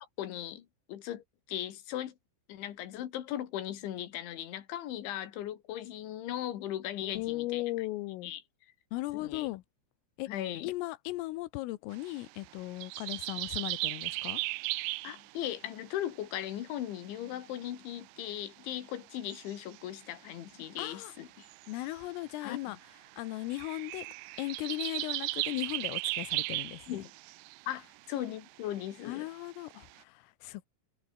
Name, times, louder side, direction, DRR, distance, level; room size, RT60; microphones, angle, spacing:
voice 1, 0.2-1.2 1.5-2.1 2.5-7.6 8.2-8.4 9.1-9.5 10.3-10.7 15.0-21.5 22.4-22.6 26.9-27.1 27.7-29.3, left 12 dB, 70° left, 4.3 m, -38 dB
voice 2, 7.0-8.3 8.9-9.6 10.2-10.3 10.6-14.4 20.8-21.1 21.7-22.8 23.2-27.0 29.1-30.7, left 19 dB, 85° left, 3.6 m, -37 dB
sound 1, 11.9-15.9 16.6-16.7 16.9-17.7 18.2-18.3 19.3-20.1 21.2-27.8 28.1-28.9 29.2-30.0, right 24 dB, 90° right, 2.6 m, -37 dB
omnidirectional pair, 5.8 m